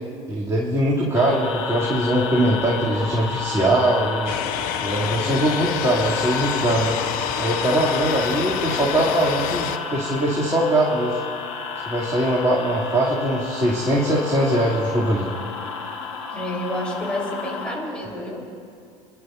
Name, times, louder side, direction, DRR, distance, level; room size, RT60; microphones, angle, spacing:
voice 1, 0.3-4.3 4.8-7.0 7.4-11.2 11.9-15.3, right 1 dB, 20° right, -7 dB, 2.7 m, -21 dB
sound 1, 1.1-17.8, left 5 dB, 75° left, 1.3 m, -31 dB
sound 2, 4.3-9.8, left 10 dB, 60° left, 0.7 m, -28 dB
voice 2, 16.3-18.4, left 1 dB, 5° left, -3 dB, 3.7 m, -29 dB
29.5 x 11.0 x 2.6 m, 2.3 s
hypercardioid pair, 65°, 16 cm